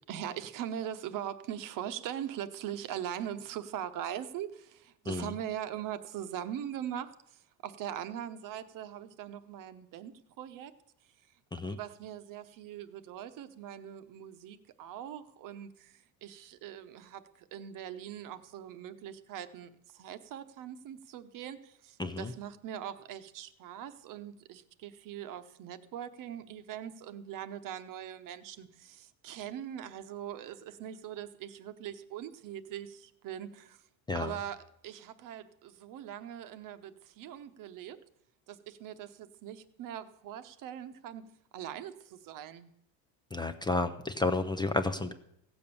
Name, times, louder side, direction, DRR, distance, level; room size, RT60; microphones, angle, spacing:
voice 1, 0.1-10.7 11.6-33.8 34.1-38.0 38.5-42.7, right 10 dB, 55° right, 11 dB, 0.9 m, -41 dB
voice 2, 22.0-22.3 34.1-34.3 43.3-45.1, left 2 dB, 10° left, 9 dB, 0.4 m, -31 dB
16.0 x 7.0 x 6.8 m, 0.75 s
cardioid pair, 140°, 40 cm